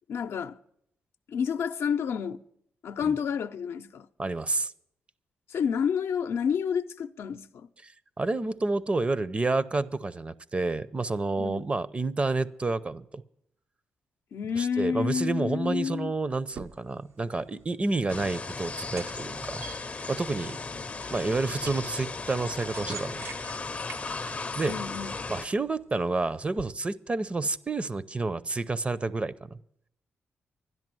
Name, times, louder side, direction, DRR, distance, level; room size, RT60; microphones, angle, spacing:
voice 1, 0.1-0.6 1.3-2.4 2.8-4.1 5.5-7.7 11.4-11.7 14.3-16.1 20.9-21.1 24.7-25.1, left 7 dB, 70° left, 0.6 m, -29 dB
voice 2, 4.2-4.7 7.8-7.9 8.2-13.2 14.6-19.6 20.1-20.6 21.1-23.3 24.6-24.8 25.3-29.6, right 3 dB, 25° right, 0.6 m, -29 dB
sound 1, 16.3-26.7, right 7 dB, 70° right, 0.7 m, -49 dB
sound 2, 18.1-25.5, left 4 dB, 30° left, 0.6 m, -36 dB
12.5 x 10.5 x 7.6 m
cardioid pair, 90°, 4 cm